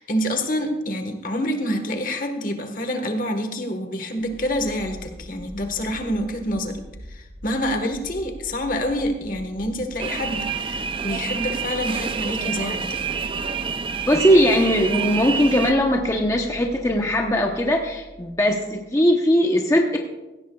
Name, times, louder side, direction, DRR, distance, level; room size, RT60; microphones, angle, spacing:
voice 1, 0.0-13.0, equal, 45° left, 6 dB, 1.4 m, -27 dB
sound 1, 4.2-19.0, equal, 85° right, 2.4 m, -42 dB
sound 2, 10.0-15.7, right 6 dB, 30° right, 0.4 m, -28 dB
voice 2, 14.0-20.0, equal, 15° left, 1 dB, 0.9 m, -19 dB
17.0 x 16.0 x 2.4 m, 1.1 s
head